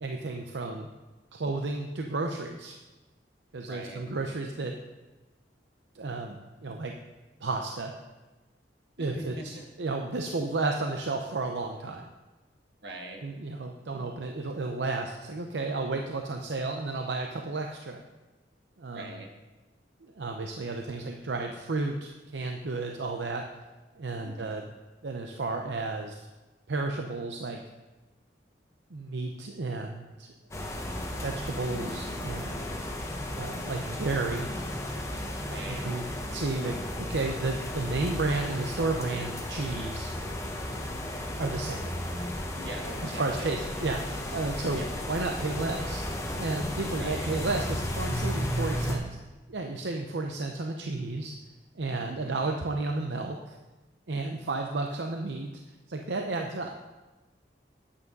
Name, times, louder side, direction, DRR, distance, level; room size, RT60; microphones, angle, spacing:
voice 1, 0.0-0.9 1.3-2.8 3.5-4.7 5.9-6.9 7.4-7.9 9.0-12.1 13.2-18.0 18.8-19.1 20.0-23.5 24.0-24.6 25.0-26.3 26.7-27.6 28.9-30.3 31.2-32.9 33.3-34.5 35.7-36.0 36.3-40.1 41.4-41.9 43.0-46.0 46.4-49.2 49.5-51.3 51.7-53.6 54.1-55.5 55.9-56.7, right 3 dB, 85° right, 3 dB, 0.7 m, -32 dB
voice 2, 3.6-4.0 9.0-9.7 12.8-13.2 18.9-19.3 24.2-24.6 35.5-35.9 42.6-43.8 44.7-45.1 47.0-47.3 52.1-52.5, right 1 dB, 70° right, 1 dB, 1.8 m, -42 dB
sound 1, 30.5-49.0, left 1 dB, 15° left, 1.2 m, -34 dB
9.6 x 8.6 x 5.3 m, 1.2 s
head